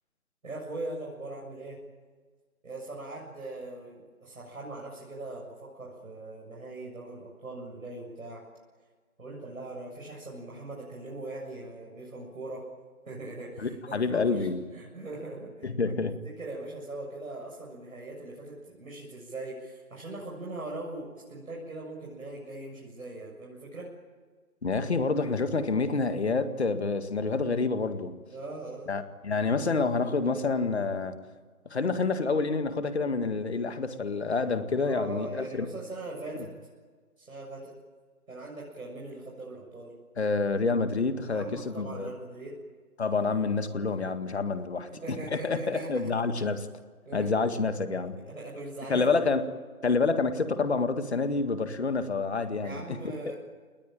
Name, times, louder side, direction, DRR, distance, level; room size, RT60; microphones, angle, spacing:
voice 1, 0.4-1.8 2.6-8.4 9.2-12.6 13.1-16.0 16.2-23.9 28.3-28.9 34.8-36.5 37.2-37.7 38.3-39.9 41.3-42.6 44.9-46.1 47.1-47.5 48.3-49.2 52.6-53.3, right 2 dB, 70° right, -4 dB, 7.4 m, -40 dB
voice 2, 13.6-14.6 15.6-16.2 24.6-28.2 28.9-31.2 31.7-35.7 40.2-42.1 43.0-46.7 47.1-48.2 48.9-49.4 49.8-53.3, left 4 dB, 50° left, 10 dB, 2.0 m, -28 dB
29.5 x 20.0 x 9.0 m, 1.5 s
figure-of-eight pair, 165°, 43 cm